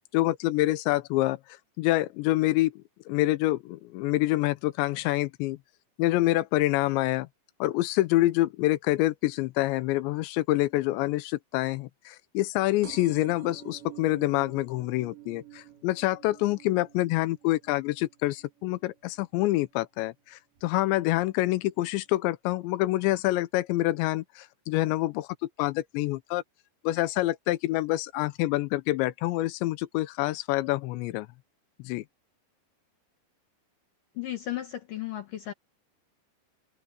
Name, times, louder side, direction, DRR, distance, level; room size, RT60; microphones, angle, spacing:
voice 1, 0.1-1.4 1.8-5.6 6.0-7.3 7.6-26.4 26.8-31.3 31.8-32.0, left 17 dB, 90° left, 3.1 m, -27 dB
sound 1, 12.8-20.1 20.6-21.0 21.9-22.0 22.2-22.3 22.5-22.6, right 13 dB, 85° right, 5.1 m, -49 dB
voice 2, 34.1-35.5, left 13 dB, 65° left, 2.4 m, -34 dB
omnidirectional pair, 5.0 m